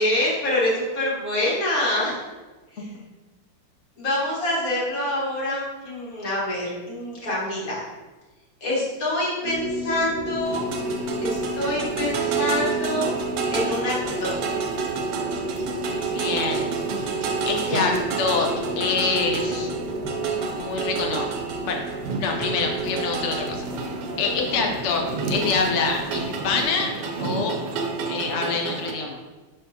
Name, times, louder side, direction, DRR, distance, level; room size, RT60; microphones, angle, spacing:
voice 1, 0.0-2.2 2.8-2.9 4.0-7.8 8.6-10.6 11.2-13.1 13.5-13.9 14.2-14.3, left 1 dB, 50° left, -5 dB, 1.9 m, -26 dB
sound 1, 9.4-26.6, equal, 20° right, 1.6 m, -32 dB
sound 2, 10.4-28.9, right 5 dB, 70° right, 1.2 m, -30 dB
voice 2, 16.1-16.6 17.5-19.7 20.6-21.3 21.6-21.8 22.2-23.7 24.2-26.9 27.2-27.5 28.1-29.2, left 4 dB, 65° left, 1 dB, 0.7 m, -25 dB
6.4 x 5.4 x 2.8 m, 1.2 s
omnidirectional pair, 2.1 m